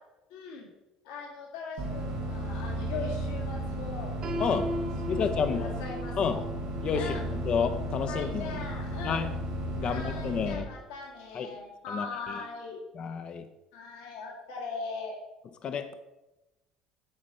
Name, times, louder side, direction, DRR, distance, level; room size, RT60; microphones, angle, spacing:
voice 1, 0.3-0.7 1.0-4.1 5.1-5.2 5.5-6.4 6.9-7.4 8.1-9.3 9.8-12.8 13.7-15.2, left 4 dB, 85° left, -1 dB, 1.9 m, -40 dB
sound 1, 1.8-10.5, right 1 dB, 85° right, 1.7 m, -34 dB
Piano, 4.2-10.1, equal, 55° right, 2.7 m, -40 dB
voice 2, 4.4-4.7 5.1-5.7 6.2-6.4 6.8-7.2 7.5-8.5 9.0-9.3 9.8-10.7 11.3-11.5 11.9-12.1 13.0-13.4 15.6-15.9, left 6 dB, 45° left, 9 dB, 0.6 m, -30 dB
8.9 x 4.2 x 5.4 m, 0.99 s
supercardioid pair, 85°, 2 cm